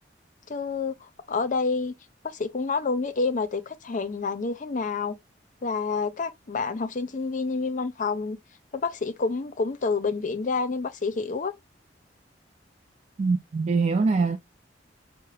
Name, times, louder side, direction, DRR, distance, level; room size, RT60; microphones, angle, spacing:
voice 1, 0.5-1.9 2.3-5.2 5.6-8.4 8.7-11.5, left 4 dB, 45° left, 0.5 m, -28 dB
voice 2, 13.2-14.4, right 4 dB, 40° right, 0.3 m, -23 dB
5.7 x 2.1 x 3.1 m
head